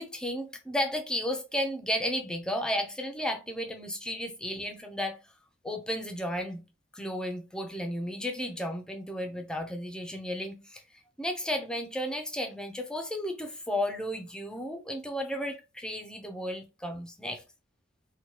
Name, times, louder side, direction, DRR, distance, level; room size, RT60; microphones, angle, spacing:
voice 1, 0.0-5.2 5.6-6.6 6.9-10.8 11.2-17.4, equal, 5° left, 0.4 m, -33 dB
2.9 x 2.1 x 3.0 m
head